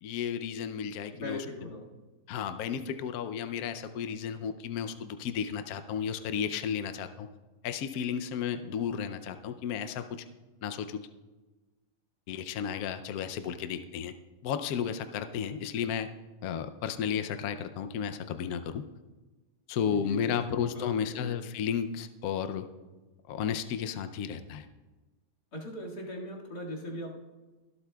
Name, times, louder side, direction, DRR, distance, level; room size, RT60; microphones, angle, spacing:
voice 1, 0.0-1.4 2.3-7.3 7.6-10.2 10.6-11.0 12.3-14.1 14.4-16.1 16.4-18.8 19.7-22.7 23.3-24.7, left 7 dB, 80° left, 9 dB, 0.8 m, -33 dB
voice 2, 1.1-1.9 19.8-21.4 25.5-27.1, left 1 dB, 50° left, -3 dB, 2.5 m, -40 dB
23.5 x 8.3 x 2.3 m, 1.2 s
omnidirectional pair, 2.2 m